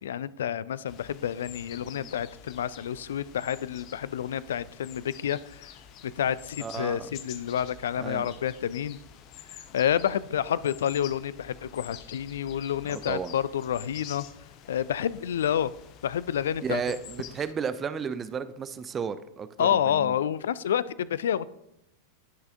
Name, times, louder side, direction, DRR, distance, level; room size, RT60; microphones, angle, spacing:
voice 1, 0.0-5.7 6.0-9.0 9.5-14.3 14.7-15.7 16.0-16.8 19.6-21.5, left 9 dB, 60° left, 0.3 m, -29 dB
sound 1, 0.9-17.5, left 9 dB, 40° left, 0.7 m, -48 dB
voice 2, 6.6-7.1 8.0-8.3 12.9-13.4 16.6-20.1, right 6 dB, 20° right, 0.5 m, -33 dB
16.0 x 5.5 x 2.6 m
figure-of-eight pair, 90°, 0 cm